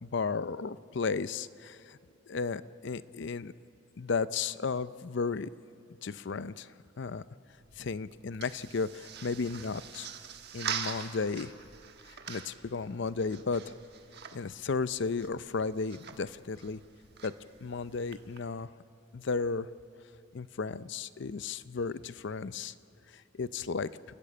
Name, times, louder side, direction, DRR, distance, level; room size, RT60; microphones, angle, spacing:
voice 1, 0.0-2.0 2.3-3.5 4.0-5.5 6.0-7.2 7.8-10.1 10.5-11.5 12.3-13.7 14.3-16.8 17.2-17.3 17.6-18.7 19.1-19.7 20.3-22.7 23.1-23.9, left 4 dB, 60° left, 16 dB, 0.5 m, -34 dB
sound 1, 7.5-18.4, right 7 dB, 55° right, 1.3 m, -44 dB
29.5 x 13.5 x 8.8 m, 2.7 s
head